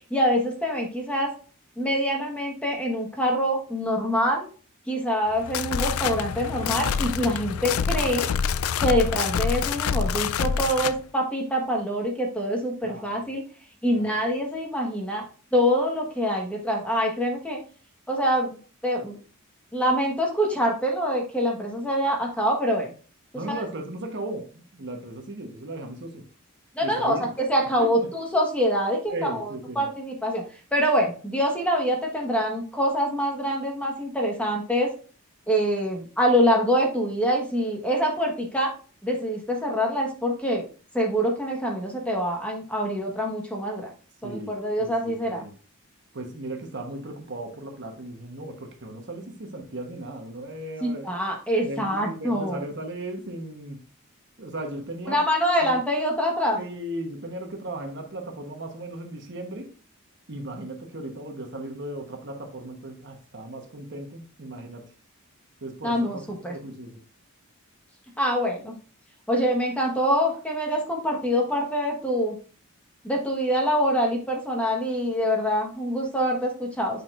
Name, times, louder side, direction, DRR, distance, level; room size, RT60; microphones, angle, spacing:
voice 1, 0.1-1.3 1.8-4.5 4.9-8.3 8.8-13.4 13.8-15.2 15.5-17.6 18.1-18.6 18.8-19.2 19.7-22.9 23.4-23.6 26.7-30.4 30.7-34.9 35.5-38.7 39.0-40.6 40.9-43.9 44.2-45.4 50.8-52.6 55.1-56.6 65.8-66.5 68.2-68.8 69.3-72.4 73.0-77.0, equal, 5° left, 1.3 m, -25 dB
sound 1, 5.3-11.0, left 6 dB, 75° left, 0.4 m, -26 dB
voice 2, 12.8-13.2 13.9-14.2 23.3-26.3 26.8-27.3 27.8-28.1 29.1-29.9 44.2-44.5 44.8-45.5 46.1-51.1 51.6-53.8 54.4-55.2 55.7-55.8 56.5-59.7 60.3-64.9 65.6-67.0, right 1 dB, 55° right, 1.1 m, -36 dB
9.5 x 4.6 x 2.5 m
head